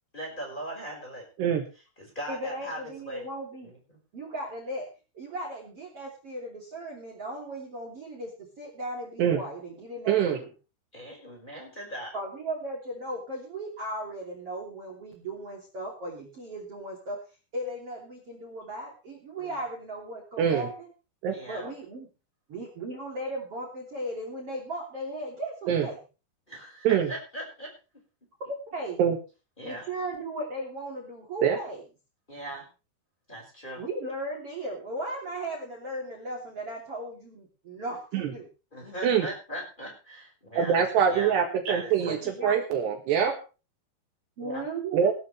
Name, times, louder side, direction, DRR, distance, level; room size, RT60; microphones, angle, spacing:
voice 1, 0.1-1.3 1.7-2.8 3.0-3.2 3.6-4.0 10.9-12.1 19.4-19.6 21.3-21.7 26.5-27.7 29.6-29.9 32.3-32.7 33.3-33.8 38.7-40.8 41.1-41.3 41.7-42.2 44.4-44.6, right 1 dB, 10° left, -1 dB, 5.1 m, -39 dB
voice 2, 2.3-3.7 4.1-4.9 5.1-8.3 8.6-10.5 12.1-17.2 17.5-20.9 21.5-22.1 22.5-26.0 28.5-29.0 29.6-31.8 33.8-38.5 42.0-42.6 44.4-45.1, right 1 dB, 35° right, 1 dB, 3.5 m, -36 dB
voice 3, 10.1-10.4 20.4-20.7 21.2-21.3 25.7-25.9 26.8-27.1 29.0-29.2 31.4-31.6 38.1-38.3 39.0-39.3 40.6-42.2 42.4-43.4 44.9-45.1, right 8 dB, 70° right, 4 dB, 3.5 m, -24 dB
19.0 x 13.0 x 3.3 m, 0.33 s
omnidirectional pair, 5.3 m